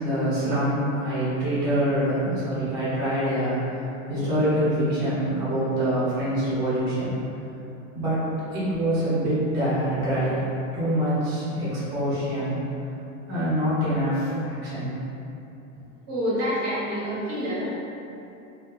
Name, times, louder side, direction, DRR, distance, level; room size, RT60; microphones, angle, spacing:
voice 1, 0.0-3.8 4.1-7.1 7.9-8.2 8.5-10.4 10.7-12.6 13.3-14.9, right 1 dB, 10° right, -19 dB, 0.5 m, -25 dB
voice 2, 16.1-17.7, equal, 30° right, -9 dB, 0.8 m, -27 dB
2.8 x 2.1 x 3.2 m, 2.8 s
supercardioid pair, 180°, 40 cm